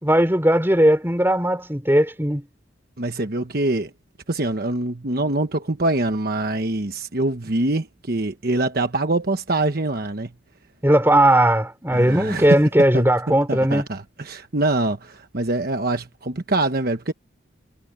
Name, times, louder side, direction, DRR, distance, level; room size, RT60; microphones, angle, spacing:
voice 1, 0.0-2.4 10.8-13.9, right 1 dB, 10° right, 3.9 m, -18 dB
voice 2, 3.0-3.9 4.3-10.3 11.9-12.5 12.9-17.1, right 2 dB, 50° right, 1.2 m, -24 dB
head